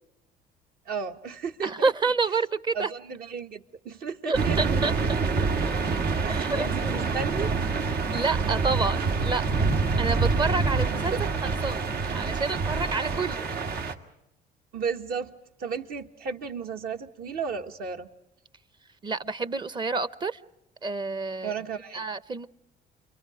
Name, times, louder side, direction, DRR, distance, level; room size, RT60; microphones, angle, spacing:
voice 1, 0.8-1.9 2.7-4.8 6.2-7.5 8.4-8.5 11.1-11.2 14.7-15.3 15.6-18.1 21.4-22.0, right 5 dB, 60° right, 5 dB, 1.6 m, -34 dB
voice 2, 1.6-2.9 4.3-5.2 5.7-5.8 6.3-6.7 8.1-11.1 11.4-11.8 12.1-13.5 19.0-20.4 20.8-21.5 21.9-22.5, right 4 dB, 25° right, 15 dB, 0.8 m, -29 dB
sound 1, 4.3-13.9, right 4 dB, 80° right, 2.1 m, -26 dB
29.5 x 23.0 x 5.0 m, 0.84 s
cardioid pair, 110°, 17 cm